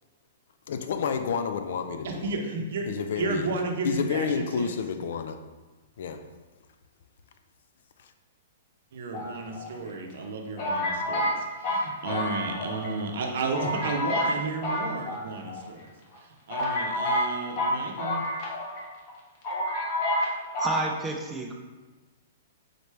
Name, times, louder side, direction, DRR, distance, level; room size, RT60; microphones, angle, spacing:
voice 1, 0.7-2.3 2.9-3.5 3.8-5.4 6.0-6.2, left 6 dB, 70° left, 0.4 m, -29 dB
voice 2, 2.0-2.9 3.2-4.7 8.9-15.8 16.2-18.2, right 3 dB, 70° right, 0.7 m, -33 dB
sound 1, 9.1-9.9 10.6-12.9 13.2-13.3 13.5-14.3 14.6-15.6 16.1-16.2 16.5-18.8 19.1-19.2 19.4-20.3 20.5-20.8, left 1 dB, 40° left, 1.0 m, -29 dB
voice 3, 20.6-21.5, right 3 dB, 10° right, 0.4 m, -30 dB
4.0 x 3.2 x 3.3 m
hypercardioid pair, 140°, 0 cm